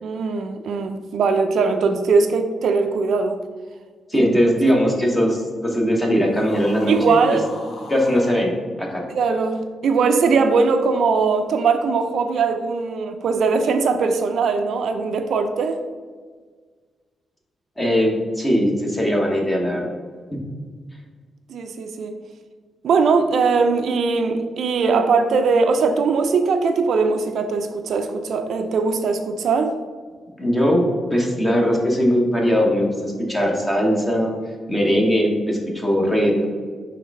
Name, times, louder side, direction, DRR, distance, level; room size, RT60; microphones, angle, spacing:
voice 1, 0.0-3.4 4.1-4.3 6.9-7.5 9.1-15.8 21.5-22.1 22.8-29.8, right 4 dB, 65° right, 7 dB, 0.4 m, -20 dB
voice 2, 4.1-7.2 7.9-9.0 17.8-19.9 20.3-20.4 30.4-34.3 34.7-36.5, equal, 10° left, 0 dB, 1.0 m, -20 dB
sound 1, 6.3-8.4, left 2 dB, 65° left, 1.1 m, -38 dB
5.7 x 3.3 x 5.3 m, 1.5 s
wide cardioid pair, 170°, 0 cm